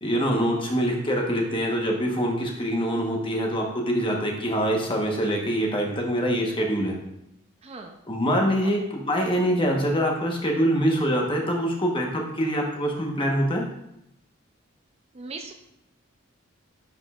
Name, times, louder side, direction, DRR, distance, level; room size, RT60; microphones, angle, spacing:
voice 1, 0.0-6.9 8.1-13.6, equal, 25° left, 0 dB, 1.0 m, -24 dB
voice 2, 7.6-8.0 8.6-8.7 15.1-15.5, right 3 dB, 30° right, 5 dB, 0.4 m, -39 dB
9.6 x 5.2 x 2.4 m, 0.81 s
head